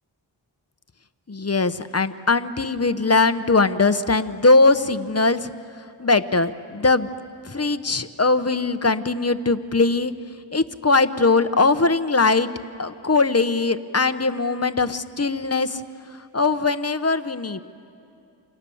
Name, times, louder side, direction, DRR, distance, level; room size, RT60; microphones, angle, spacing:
voice 1, 1.3-5.5 6.0-7.1 7.4-10.1 10.5-12.5 12.8-15.8 16.3-17.6, left 3 dB, 30° left, 12 dB, 0.9 m, -20 dB
29.5 x 26.5 x 7.1 m, 2.7 s
wide cardioid pair, 60°, 46 cm